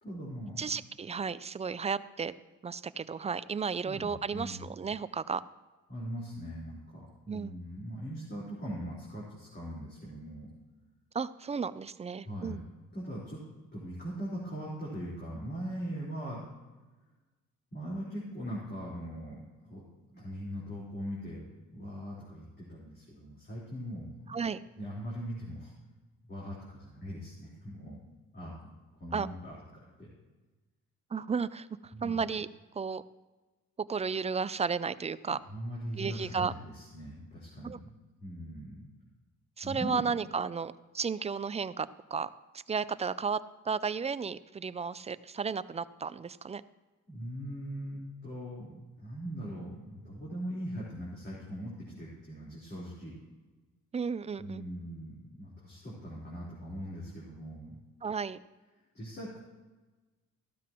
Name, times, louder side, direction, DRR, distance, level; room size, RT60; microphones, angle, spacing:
voice 1, 0.0-0.6 3.8-4.6 5.9-10.5 12.3-12.6 12.9-13.4 13.7-16.5 17.7-19.8 20.1-21.4 21.7-24.4 24.8-25.7 26.3-28.0 28.3-28.6 29.0-30.1 31.9-32.2 35.5-37.9 38.2-38.9 39.6-40.0 47.1-53.2 54.4-57.8 58.9-59.4, equal, 35° left, -7 dB, 4.2 m, -40 dB
voice 2, 0.6-2.3 2.6-5.4 7.3-7.6 11.1-12.6 24.3-24.6 29.1-29.3 31.1-32.5 32.7-33.0 33.8-35.4 36.0-36.5 37.6-37.8 39.6-43.4 43.6-46.6 53.9-54.6 58.0-58.4, right 5 dB, 20° right, 16 dB, 0.4 m, -33 dB
15.0 x 12.0 x 3.0 m, 1.2 s
cardioid pair, 90°, 30 cm